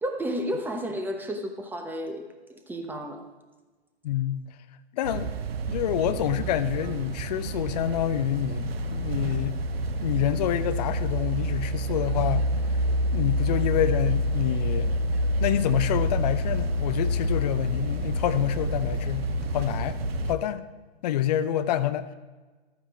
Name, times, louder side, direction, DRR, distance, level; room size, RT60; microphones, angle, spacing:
voice 1, 0.0-3.2, equal, 5° right, 4 dB, 0.9 m, -32 dB
voice 2, 4.0-4.4 4.9-5.3 5.7-9.6 10.0-12.5 13.1-14.9 15.4-19.3 19.5-20.0 20.3-20.6 21.0-22.2, left 11 dB, 40° left, 11 dB, 0.6 m, -27 dB
sound 1, 5.0-20.3, equal, 65° right, 0.8 m, -28 dB
13.0 x 9.0 x 4.7 m, 1.3 s
figure-of-eight pair, 115°, 33 cm